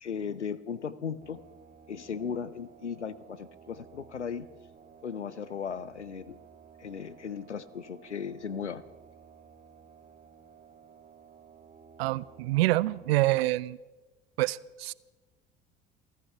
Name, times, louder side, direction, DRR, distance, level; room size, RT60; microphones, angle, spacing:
voice 1, 0.0-1.4 1.9-4.5 5.0-6.4 6.8-8.8, left 6 dB, 85° left, 18 dB, 0.6 m, -36 dB
sound 1, 1.2-13.1, right 7 dB, 25° right, 2.1 m, -55 dB
voice 2, 12.0-13.8 14.4-14.9, right 18 dB, 65° right, 23 dB, 0.5 m, -26 dB
28.0 x 14.5 x 3.4 m, 1.2 s
figure-of-eight pair, 60°, 34 cm